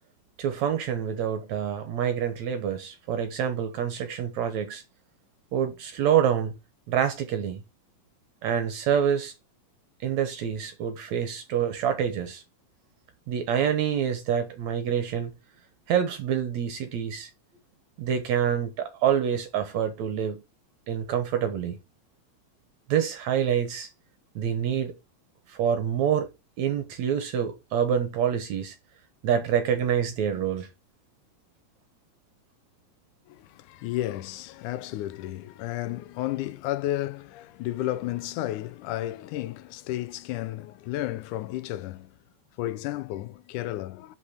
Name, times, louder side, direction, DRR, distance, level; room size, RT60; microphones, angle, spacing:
voice 1, 0.4-4.8 5.5-6.5 6.9-7.6 8.4-9.3 10.0-12.4 13.3-15.3 15.9-17.3 18.0-20.4 20.9-21.8 22.9-23.9 24.4-25.0 25.5-26.3 26.6-28.8 29.2-30.7, right 8 dB, 70° right, 2.3 m, -26 dB
voice 2, 33.3-42.1 42.6-44.2, left 15 dB, 85° left, 2.2 m, -32 dB
8.4 x 6.4 x 5.1 m
omnidirectional pair, 3.5 m